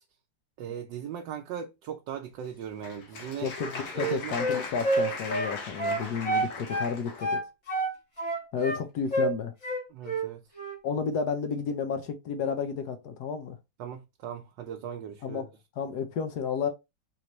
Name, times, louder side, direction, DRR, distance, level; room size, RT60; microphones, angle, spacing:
voice 1, 0.6-3.5 3.9-4.3 9.9-10.4 13.8-15.4, right 8 dB, 75° right, 1.3 m, -38 dB
Applause, 2.4-7.3, left 4 dB, 85° left, 1.9 m, -39 dB
voice 2, 3.4-7.4 8.5-9.5 10.8-13.6 15.2-15.5 15.8-16.7, left 6 dB, 65° left, 1.3 m, -31 dB
Wind instrument woodwind instrument, 3.4-6.9 7.2-8.8 9.1-9.3 9.6-10.3 10.5-10.8, right 2 dB, 50° left, 2.4 m, -29 dB
4.2 x 3.2 x 3.0 m
omnidirectional pair, 2.0 m